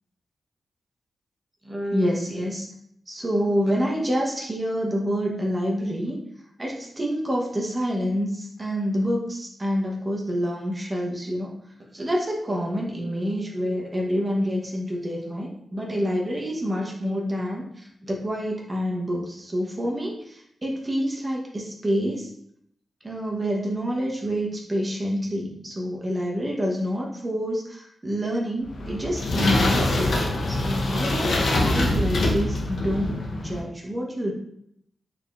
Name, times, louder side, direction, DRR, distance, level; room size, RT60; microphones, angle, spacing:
voice 1, 1.6-2.7 3.1-6.2 6.6-11.5 11.9-22.3 23.0-30.1 30.5-34.3, equal, 25° right, -2 dB, 0.8 m, -27 dB
sound 1, 28.7-33.6, left 1 dB, 70° left, 0.7 m, -24 dB
4.2 x 3.4 x 2.4 m, 0.71 s
cardioid pair, 70°, 0 cm